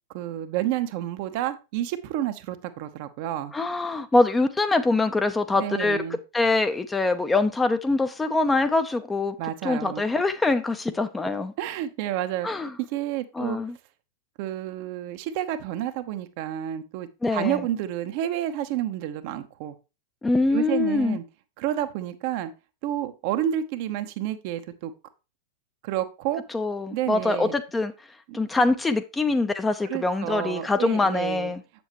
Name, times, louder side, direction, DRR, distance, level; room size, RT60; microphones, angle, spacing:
voice 1, 0.1-3.5 5.5-6.2 9.4-10.0 11.6-12.5 12.9-13.6 14.4-19.7 20.5-21.2 21.6-22.5 22.8-24.9 25.8-26.4 26.9-27.5 28.3-28.4 29.8-31.5, right 12 dB, 45° right, 0.8 m, -30 dB
voice 2, 3.5-6.0 6.3-9.4 9.6-11.5 12.4-12.7 13.4-13.7 17.2-17.6 20.2-21.2 26.5-27.9 28.3-31.6, left 3 dB, 10° left, 0.7 m, -24 dB
8.0 x 7.0 x 3.0 m
figure-of-eight pair, 90°, 0 cm